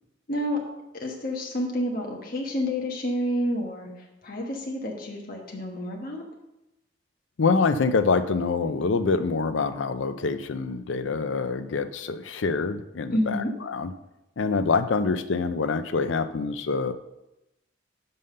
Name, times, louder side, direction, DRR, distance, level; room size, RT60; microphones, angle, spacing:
voice 1, 0.3-0.6 1.0-3.9 4.2-6.2 13.1-13.5, equal, 50° left, -1 dB, 1.3 m, -29 dB
voice 2, 7.4-13.9 14.4-16.9, left 4 dB, 80° left, 11 dB, 0.5 m, -25 dB
5.5 x 5.5 x 6.5 m, 0.92 s
head